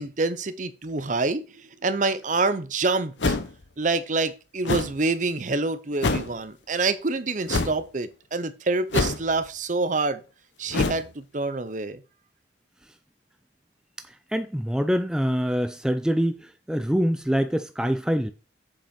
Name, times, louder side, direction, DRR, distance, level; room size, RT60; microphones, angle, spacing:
voice 1, 0.0-3.4 3.8-10.2 10.6-12.0, right 3 dB, 45° right, 0.7 m, -27 dB
sound 1, 3.2-3.6 4.6-5.0 6.0-6.3 7.5-7.8 8.9-9.4 10.7-11.1, left 3 dB, 80° left, 0.9 m, -25 dB
voice 2, 14.3-18.3, equal, 5° right, 0.4 m, -25 dB
7.4 x 5.1 x 5.2 m
head